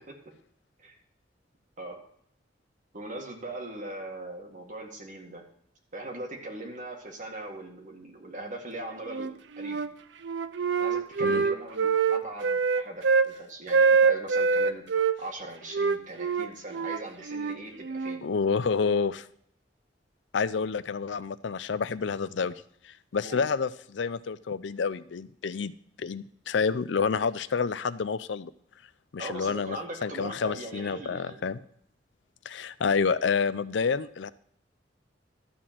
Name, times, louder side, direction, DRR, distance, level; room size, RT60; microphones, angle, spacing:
voice 1, 2.9-5.4 5.9-9.8 10.8-14.8 15.2-18.2 23.2-23.4 29.2-31.4, right 2 dB, 45° right, 2 dB, 1.9 m, -40 dB
Wind instrument woodwind instrument, 9.1-9.9 10.2-13.3 13.7-15.2 15.7-18.2, right 5 dB, 70° right, 0.5 m, -25 dB
voice 2, 18.2-19.3 20.3-22.5 22.8-25.7 26.0-28.5 29.1-31.6 32.5-34.3, left 5 dB, 75° left, 16 dB, 0.5 m, -29 dB
12.5 x 4.3 x 7.5 m, 0.68 s
head